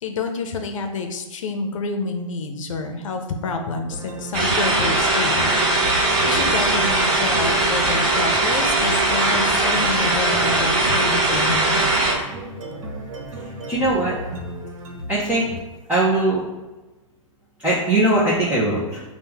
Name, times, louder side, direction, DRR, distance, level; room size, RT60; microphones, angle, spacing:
voice 1, 0.0-5.4 6.0-11.8, left 3 dB, 70° left, 5 dB, 0.7 m, -28 dB
sound 1, 3.9-15.8, right 1 dB, 70° right, 1.1 m, -34 dB
sound 2, 4.3-12.1, right 2 dB, 35° right, 1.5 m, -20 dB
voice 2, 13.7-14.1 15.1-15.5 15.9-16.4 17.6-19.0, right 1 dB, 10° right, -8 dB, 0.8 m, -20 dB
5.6 x 2.3 x 3.5 m, 1.1 s
hypercardioid pair, 135°, 17 cm